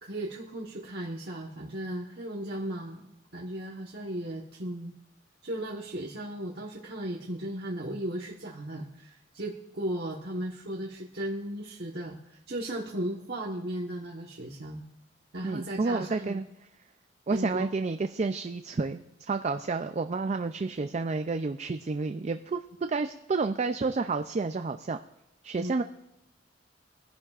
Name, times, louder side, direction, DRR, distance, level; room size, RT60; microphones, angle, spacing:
voice 1, 0.0-4.9 5.4-14.8 15.3-16.4 17.3-17.7 25.6-25.7, right 1 dB, 60° right, -2 dB, 1.2 m, -36 dB
voice 2, 15.4-16.4 17.3-22.6 22.9-25.0 25.4-25.8, right 4 dB, 35° right, 8 dB, 0.4 m, -30 dB
22.0 x 11.5 x 2.5 m, 0.85 s
head